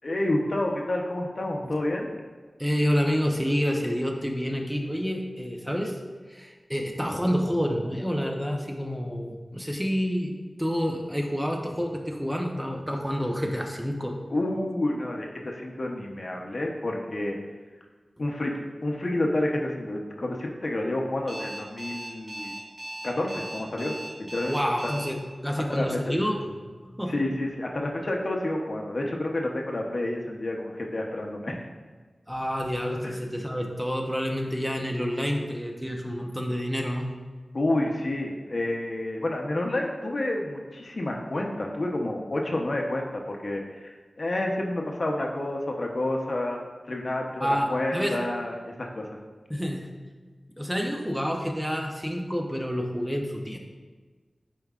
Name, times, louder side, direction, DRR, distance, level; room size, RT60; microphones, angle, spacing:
voice 1, 0.0-2.1 14.3-17.4 18.2-18.5 18.8-22.5 23.0-24.6 24.8-24.9 25.6-26.0 27.1-31.7 33.0-33.1 37.5-49.1, left 1 dB, 60° left, 1 dB, 0.8 m, -29 dB
voice 2, 2.6-6.0 6.3-14.2 24.5-27.3 32.3-37.1 47.4-48.2 49.5-49.9 50.6-53.6, equal, 5° right, 1 dB, 0.7 m, -28 dB
Alarm, 21.3-25.1, right 1 dB, 40° right, 1.7 m, -37 dB
9.1 x 4.6 x 2.4 m, 1.4 s
wide cardioid pair, 70°, 0 cm